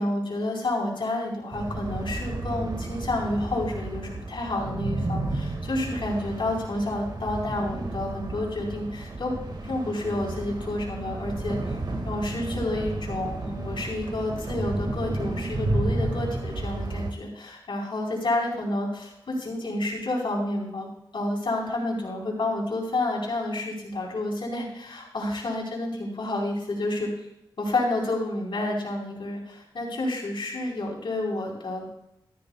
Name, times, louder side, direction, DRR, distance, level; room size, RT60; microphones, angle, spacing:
voice 1, 0.0-9.3 9.6-11.8 12.0-20.9 21.1-27.1 27.6-31.8, left 2 dB, 70° left, -2 dB, 4.4 m, -29 dB
sound 1, 1.5-17.1, right 2 dB, 55° right, 2.0 m, -32 dB
14.0 x 14.0 x 2.4 m, 0.82 s
wide cardioid pair, 70°, 9 cm